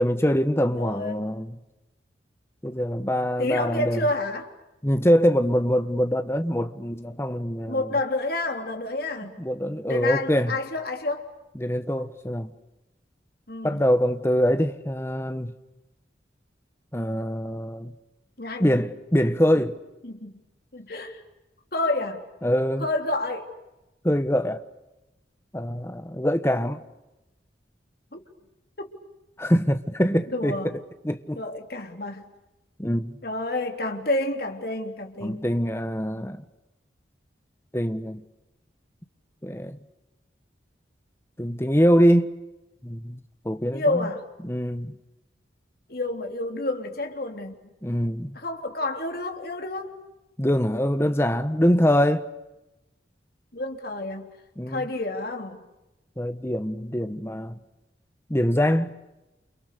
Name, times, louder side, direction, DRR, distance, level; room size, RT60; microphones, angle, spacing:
voice 1, 0.0-1.6 2.6-4.1 4.8-7.9 9.4-10.6 11.5-12.5 13.6-15.5 16.9-17.9 18.6-19.8 22.4-22.9 24.0-24.6 25.5-26.8 29.4-30.7 31.0-31.4 32.8-33.2 35.2-36.4 37.7-38.2 39.4-39.8 41.4-42.3 42.8-44.1 44.4-45.0 47.8-48.4 50.4-52.2 54.6-54.8 56.2-57.6 58.3-58.9, equal, 15° left, 1.3 m, -24 dB
voice 2, 0.7-1.3 3.4-4.5 7.7-9.4 9.9-11.3 13.5-13.8 18.4-18.7 20.0-20.4 20.7-21.2 21.7-22.2 22.8-23.5 28.1-28.2 28.8-28.9 30.3-30.7 31.3-32.3 33.2-35.4 43.7-44.3 45.9-47.7 48.3-50.0 53.5-54.3 54.7-55.6, left 2 dB, 55° left, 3.3 m, -29 dB
29.5 x 29.0 x 6.8 m
head